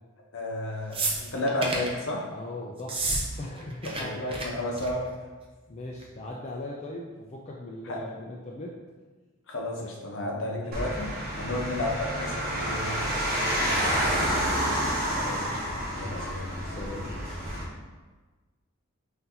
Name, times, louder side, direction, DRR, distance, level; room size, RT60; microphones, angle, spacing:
voice 1, 0.3-2.3 3.8-5.0 7.8-8.0 9.5-13.1 15.1-15.6 15.9-16.4, left 1 dB, 60° left, -2 dB, 0.8 m, -32 dB
sound 1, 0.9-1.9 2.8-3.2 3.5-4.0 4.3-4.4 4.8-5.1 6.0-6.1, right 3 dB, 25° right, 0.5 m, -30 dB
voice 2, 2.3-3.0 3.4-4.1 5.7-8.7 11.4-11.6 13.5-14.5 16.0-16.3 16.6-17.4, left 1 dB, 30° left, -3 dB, 0.3 m, -39 dB
sound 2, 10.7-17.6, equal, 45° right, 1.0 m, -29 dB
5.7 x 2.6 x 2.8 m, 1.3 s
head